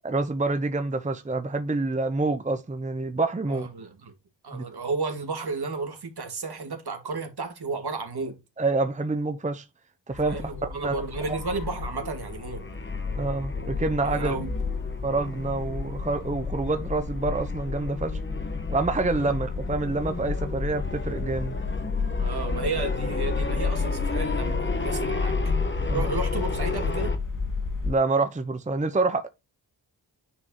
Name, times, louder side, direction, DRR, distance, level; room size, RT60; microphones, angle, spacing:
voice 1, 0.0-3.7 4.5-4.6 8.6-9.7 10.1-10.9 13.2-14.3 15.0-18.2 18.7-21.6 25.9-26.1 27.8-29.3, right 3 dB, 15° right, 0.8 m, -27 dB
voice 2, 3.5-4.1 4.4-8.4 10.2-12.6 14.0-14.5 22.2-25.4 25.9-27.1, right 3 dB, 60° right, 2.3 m, -32 dB
sound 1, 10.1-27.9, left 4 dB, 45° left, 2.8 m, -31 dB
sound 2, 11.2-27.2, left 3 dB, 25° left, 1.4 m, -36 dB
9.8 x 4.4 x 3.0 m
cardioid pair, 70°, 44 cm